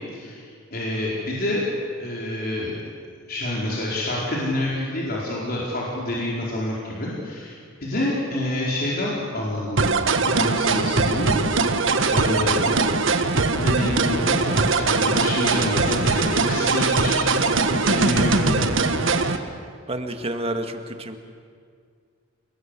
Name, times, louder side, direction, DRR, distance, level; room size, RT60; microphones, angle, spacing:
voice 1, 0.1-0.4 0.7-1.6 2.0-2.8 3.3-7.5 7.8-11.7 12.1-13.0 13.5-18.6, left 1 dB, 50° left, -4 dB, 4.5 m, -27 dB
sound 1, 9.8-19.4, right 3 dB, 70° right, 1.5 m, -21 dB
voice 2, 19.9-21.2, right 1 dB, 30° right, 6 dB, 2.0 m, -30 dB
28.5 x 20.5 x 8.3 m, 2.2 s
head